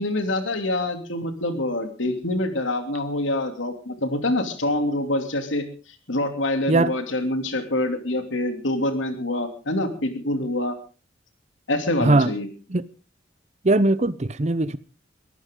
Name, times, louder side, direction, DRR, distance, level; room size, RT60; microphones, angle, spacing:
voice 1, 0.0-5.7 6.1-10.8 11.7-12.5, left 1 dB, 90° left, 2.9 m, -25 dB
voice 2, 12.0-12.3 12.7-12.8 13.6-14.8, right 2 dB, 35° right, 0.7 m, -20 dB
23.0 x 14.5 x 3.8 m
head